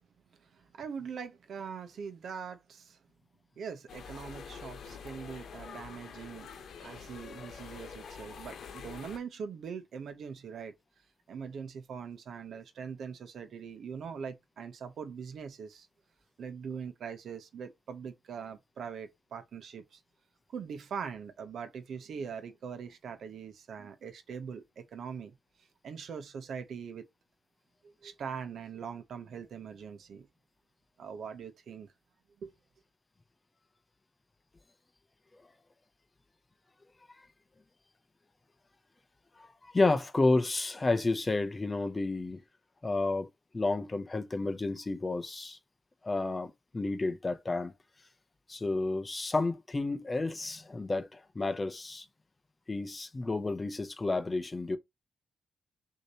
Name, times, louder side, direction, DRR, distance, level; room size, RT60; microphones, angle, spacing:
voice 1, 0.4-3.0 3.6-6.5 6.8-10.7 11.3-15.9 16.4-20.0 20.5-25.3 25.8-27.0 27.8-30.3 31.0-31.9 32.4-32.5, right 6 dB, 65° right, 0.8 m, -42 dB
sound 1, 3.9-9.2, left 6 dB, 70° left, 0.9 m, -46 dB
voice 2, 8.1-8.5 39.6-42.4 42.8-43.3 43.5-45.6 46.0-47.7 48.5-52.0 52.7-54.8, left 3 dB, 20° left, 0.6 m, -31 dB
6.4 x 2.8 x 2.9 m
wide cardioid pair, 135°, 0 cm